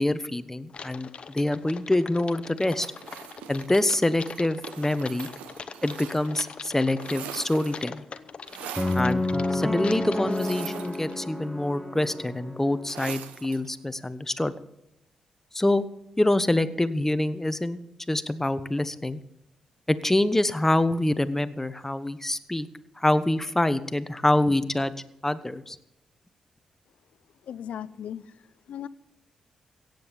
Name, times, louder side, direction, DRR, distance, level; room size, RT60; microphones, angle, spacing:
voice 1, 0.0-2.9 3.5-5.3 5.8-8.0 8.9-9.2 9.5-14.5 15.5-15.8 16.2-17.8 18.1-19.2 19.9-22.7 23.0-24.9 25.2-25.8, left 1 dB, 15° left, 13 dB, 1.1 m, -25 dB
Typing, 0.7-11.2, left 5 dB, 55° left, 1.0 m, -43 dB
sound 1, 2.7-6.5 6.8-7.9 8.5-9.1 10.3-11.5 12.9-13.7, right 9 dB, 90° right, 0.9 m, -42 dB
sound 2, 8.8-12.9, left 2 dB, 5° right, 1.9 m, -29 dB
voice 2, 27.4-28.9, left 9 dB, 75° left, 16 dB, 0.6 m, -38 dB
17.0 x 7.9 x 7.0 m, 0.85 s
supercardioid pair, 45°, 2 cm